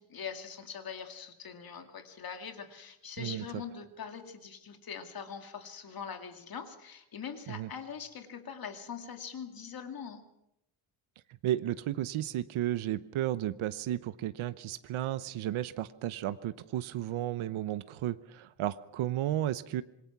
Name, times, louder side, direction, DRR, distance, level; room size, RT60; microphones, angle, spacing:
voice 1, 0.0-10.2, left 7 dB, 45° left, 6 dB, 2.2 m, -42 dB
voice 2, 11.4-19.8, right 13 dB, 75° right, 13 dB, 0.9 m, -33 dB
26.5 x 22.0 x 6.0 m, 0.81 s
cardioid pair, 165°, 49 cm